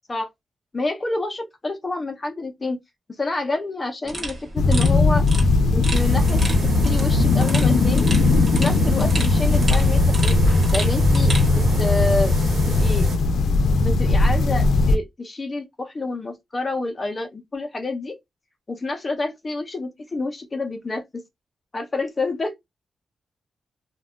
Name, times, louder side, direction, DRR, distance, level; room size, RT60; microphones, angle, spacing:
voice 1, 0.7-2.8 3.2-5.2 5.7-6.4 6.8-8.1 8.4-10.4 10.7-12.3 12.7-13.1 13.8-18.2 18.7-21.2 21.7-22.5, left 2 dB, 25° left, 0.4 m, -28 dB
sound 1, 4.1-11.5, right 2 dB, 45° right, 0.9 m, -33 dB
sound 2, 4.6-15.0, left 3 dB, 90° left, 0.3 m, -19 dB
sound 3, 5.9-13.2, right 1 dB, 80° right, 1.1 m, -26 dB
2.2 x 2.1 x 3.4 m
wide cardioid pair, 175°, 0 cm